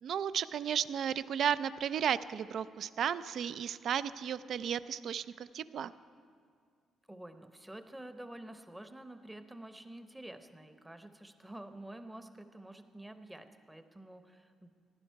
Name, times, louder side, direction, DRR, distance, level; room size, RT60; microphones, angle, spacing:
voice 1, 0.0-5.9, right 8 dB, 65° right, 15 dB, 0.3 m, -34 dB
voice 2, 7.1-14.7, right 1 dB, 10° right, 8 dB, 0.8 m, -49 dB
16.0 x 11.0 x 4.6 m, 2.1 s
cardioid pair, 90°, 0 cm